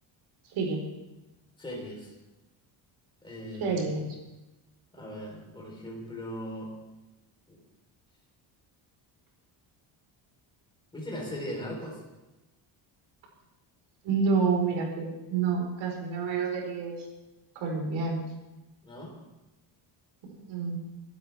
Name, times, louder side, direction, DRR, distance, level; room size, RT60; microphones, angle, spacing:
voice 1, 1.6-2.1 3.2-3.8 4.9-6.7 7.5-7.6 10.9-12.0 18.8-19.2, equal, 10° left, -2 dB, 4.0 m, -38 dB
voice 2, 3.6-4.0 14.0-17.1 17.5-18.3 20.5-20.8, right 5 dB, 75° right, 0 dB, 4.9 m, -28 dB
23.5 x 12.0 x 3.6 m, 1.0 s
cardioid pair, 180°, 47 cm